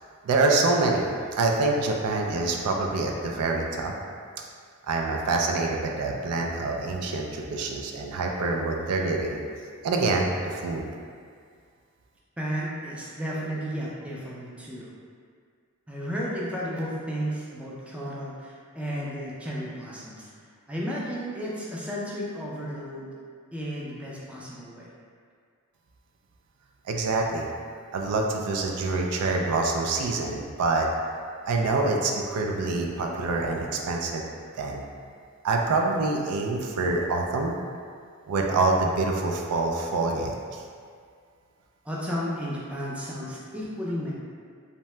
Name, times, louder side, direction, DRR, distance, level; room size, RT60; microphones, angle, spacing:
voice 1, 0.2-3.9 4.9-9.4 9.8-10.9 26.9-27.5 27.9-30.9 31.5-34.2 34.5-34.8 35.4-37.5 38.3-40.6, right 3 dB, 75° right, 1 dB, 0.3 m, -26 dB
voice 2, 12.4-14.9 15.9-20.3 20.7-23.1 23.5-24.9 41.8-44.1, equal, 5° right, -6 dB, 0.4 m, -33 dB
2.7 x 2.1 x 3.1 m, 2.1 s
head